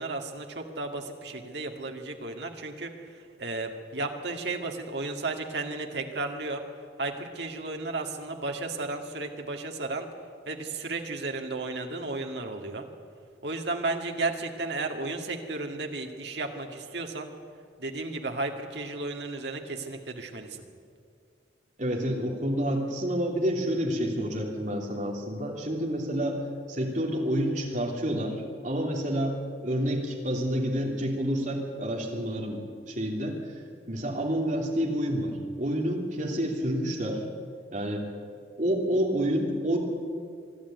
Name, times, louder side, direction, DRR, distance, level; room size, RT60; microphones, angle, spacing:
voice 1, 0.0-2.9 3.4-6.6 7.0-10.1 10.5-12.9 13.4-17.3 17.8-20.6, right 3 dB, 65° right, 3 dB, 2.1 m, -33 dB
voice 2, 21.8-26.4 26.7-37.2 37.7-38.1 38.6-39.8, equal, 40° right, 0 dB, 3.3 m, -29 dB
24.5 x 12.0 x 9.4 m, 2.2 s
head